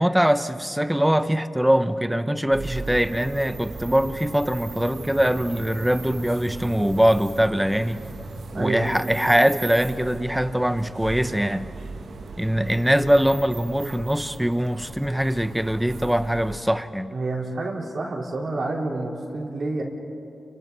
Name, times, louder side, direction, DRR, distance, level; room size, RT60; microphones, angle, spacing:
voice 1, 0.0-8.1 8.6-11.7 12.4-17.2, equal, 5° right, 11 dB, 0.9 m, -22 dB
sound 1, 2.5-16.6, right 3 dB, 80° right, 1.6 m, -38 dB
voice 2, 8.5-9.1 17.1-19.8, right 2 dB, 60° right, -2 dB, 4.1 m, -29 dB
30.0 x 25.0 x 4.2 m, 2.7 s
cardioid pair, 60°, 0 cm